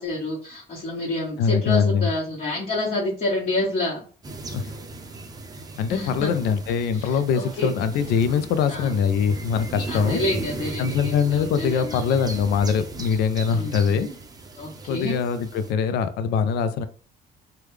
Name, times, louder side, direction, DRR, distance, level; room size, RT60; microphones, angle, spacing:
voice 1, 0.0-4.0 5.9-6.3 6.9-7.7 8.7-8.9 9.9-12.2 13.5-14.2 14.5-15.2, left 1 dB, 45° left, 1.3 m, -28 dB
voice 2, 1.4-2.1 4.5-4.8 5.8-10.2 10.8-14.1 14.9-16.9, left 6 dB, 80° left, 0.4 m, -23 dB
sound 1, 4.2-15.7, right 3 dB, 20° right, 0.5 m, -36 dB
3.4 x 2.2 x 3.2 m
cardioid pair, 110°, 17 cm